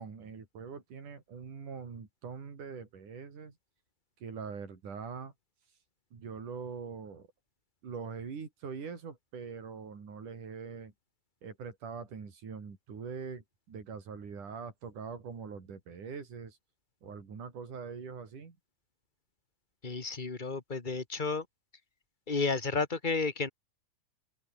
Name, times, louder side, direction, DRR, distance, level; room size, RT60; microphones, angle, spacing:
voice 1, 0.0-3.5 4.2-5.3 6.1-7.3 7.8-10.9 11.4-16.6 17.0-18.6, right 5 dB, 85° right, 5.7 m, -43 dB
voice 2, 19.8-21.4 22.3-23.5, left 4 dB, 20° left, 1.5 m, -32 dB
omnidirectional pair, 3.5 m